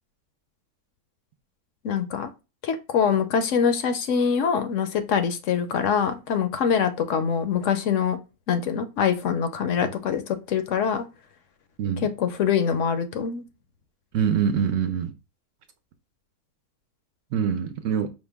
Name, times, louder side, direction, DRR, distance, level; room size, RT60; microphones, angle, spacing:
voice 1, 1.8-2.3 2.6-8.2 8.5-11.1 12.0-13.4, left 7 dB, 65° left, 0.8 m, -24 dB
voice 2, 14.1-15.1 17.3-18.1, right 7 dB, 65° right, 0.8 m, -24 dB
5.0 x 2.1 x 3.3 m
omnidirectional pair, 1.6 m